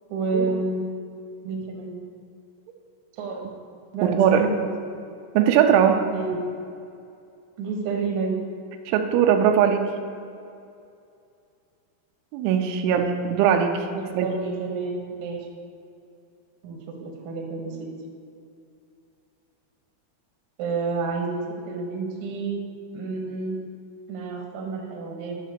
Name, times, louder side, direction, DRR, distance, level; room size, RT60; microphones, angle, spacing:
voice 1, 0.1-0.8 1.4-1.9 3.2-3.5 3.9-4.7 6.1-6.4 7.6-8.4 13.9-15.5 16.6-17.9 20.6-22.6 22.9-23.6 24.1-25.3, right 4 dB, 65° right, 0 dB, 2.1 m, -29 dB
voice 2, 4.0-4.5 5.3-6.0 8.9-9.9 12.3-13.8 14.2-14.3, right 8 dB, 85° right, 5 dB, 3.1 m, -20 dB
11.0 x 4.3 x 6.6 m, 2.5 s
omnidirectional pair, 5.3 m